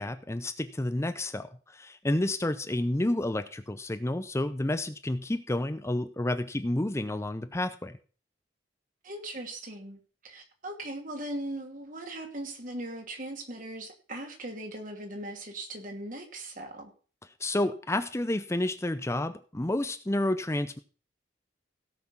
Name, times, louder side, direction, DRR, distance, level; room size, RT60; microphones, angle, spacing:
voice 1, 0.0-8.0 17.4-20.8, left 1 dB, 15° left, 10 dB, 0.6 m, -30 dB
voice 2, 9.0-16.9, right 1 dB, 45° right, 4 dB, 2.7 m, -39 dB
17.0 x 6.1 x 6.0 m, 0.39 s
head